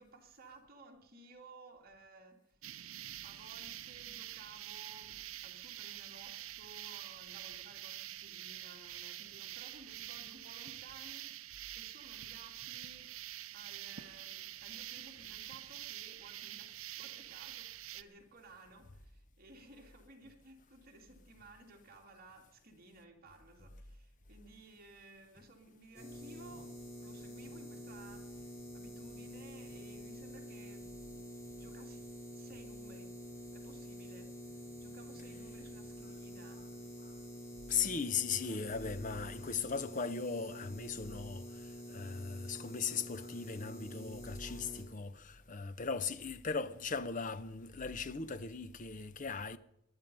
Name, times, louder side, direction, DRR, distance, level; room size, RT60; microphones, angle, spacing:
voice 1, 0.0-2.8 3.2-13.2 13.5-33.1 33.5-36.7 37.7-38.1, right 2 dB, 40° right, 2.5 m, -57 dB
sound 1, 2.6-18.0, right 13 dB, 70° right, 0.7 m, -46 dB
sound 2, 25.9-44.8, equal, 10° left, 3.8 m, -48 dB
voice 2, 37.7-41.5 41.9-49.6, left 5 dB, 35° left, 0.7 m, -38 dB
20.0 x 11.5 x 5.4 m
head